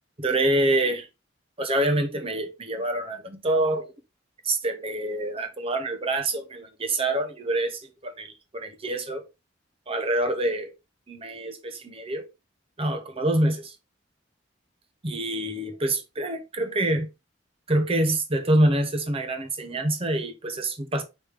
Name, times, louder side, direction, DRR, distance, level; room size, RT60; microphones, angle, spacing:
voice 1, 0.2-1.1 1.6-3.9 4.4-9.2 9.9-10.7 11.1-12.3 12.8-13.8 15.0-17.1 17.7-21.0, right 1 dB, 30° right, 0.8 m, -26 dB
4.9 x 3.2 x 3.4 m
head